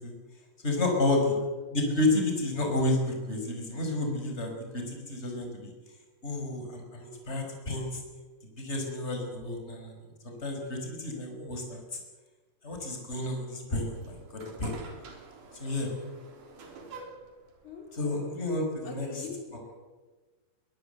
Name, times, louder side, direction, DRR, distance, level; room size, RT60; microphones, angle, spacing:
voice 1, 0.6-1.4 1.7-5.7 6.2-8.0 8.6-12.0 12.6-14.7 15.5-15.9 17.9-19.3 19.5-19.6, left 2 dB, 20° left, 2 dB, 5.2 m, -31 dB
sound 1, 13.9-19.2, right 4 dB, 90° right, 4.9 m, -49 dB
voice 2, 17.6-18.2 18.8-19.4 19.7-19.8, left 5 dB, 70° left, 0 dB, 5.6 m, -43 dB
22.5 x 21.0 x 8.0 m, 1.3 s
omnidirectional pair, 3.6 m